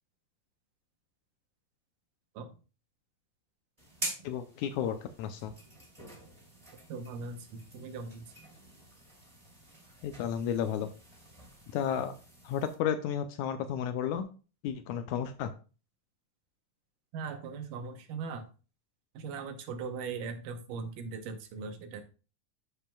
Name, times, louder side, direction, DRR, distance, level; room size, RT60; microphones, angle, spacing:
sound 1, 3.8-12.8, right 1 dB, 10° right, 2.3 m, -46 dB
voice 1, 4.2-5.5 10.0-10.9 11.7-12.1 12.5-14.3 14.6-15.5, left 8 dB, 80° left, 9 dB, 1.8 m, -32 dB
voice 2, 6.9-8.3 17.1-18.5 19.1-22.0, right 5 dB, 85° right, 7 dB, 2.5 m, -39 dB
12.5 x 5.0 x 2.3 m, 0.35 s
omnidirectional pair, 3.7 m